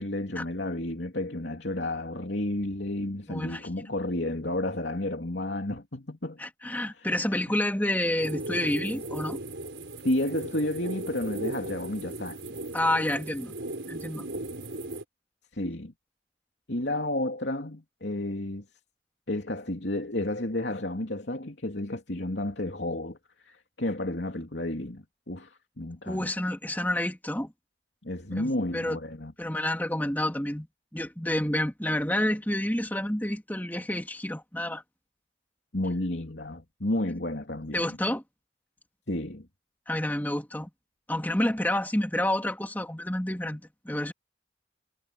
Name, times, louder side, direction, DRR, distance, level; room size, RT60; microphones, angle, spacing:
voice 1, 0.0-6.4 6.9-7.2 7.5-7.6 10.0-12.4 15.5-15.9 16.7-18.6 19.3-23.2 23.4-26.3 28.0-29.3 35.7-38.0 39.1-39.5, left 1 dB, 70° left, 3.1 m, -31 dB
voice 2, 3.3-3.9 6.4-9.4 12.7-13.5 13.9-14.3 26.1-27.5 28.4-29.0 29.4-30.7 30.9-34.8 37.7-38.2 39.9-40.7 41.1-44.1, left 1 dB, 10° left, 2.9 m, -29 dB
sound 1, 8.2-15.0, right 2 dB, 85° right, 5.2 m, -37 dB
head